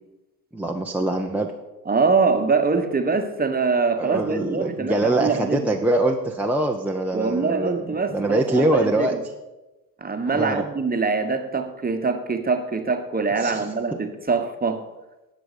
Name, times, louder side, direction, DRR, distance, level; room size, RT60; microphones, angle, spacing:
voice 1, 0.5-1.5 4.0-9.1 10.3-10.6 13.4-13.7, right 1 dB, 5° right, 1.0 m, -23 dB
voice 2, 1.8-5.8 7.1-9.2 10.0-14.9, right 4 dB, 20° right, 1.4 m, -24 dB
18.0 x 6.1 x 5.2 m
hypercardioid pair, 60°, 48 cm